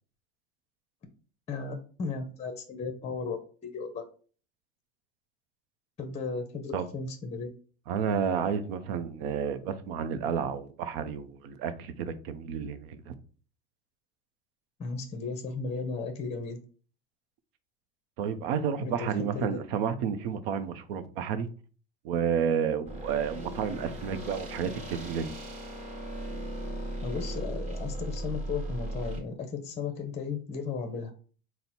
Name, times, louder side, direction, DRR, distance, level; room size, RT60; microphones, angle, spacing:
voice 1, 1.5-3.4 3.6-4.0 6.0-7.5 14.8-16.6 18.8-19.6 27.0-31.1, left 4 dB, 20° left, 0.6 m, -35 dB
voice 2, 7.9-13.2 18.2-21.5 22.0-25.3, right 7 dB, 65° right, 0.7 m, -31 dB
sound 1, 22.9-29.2, right 1 dB, 20° right, 1.3 m, -37 dB
3.9 x 2.1 x 4.3 m
hypercardioid pair, 105°, 31 cm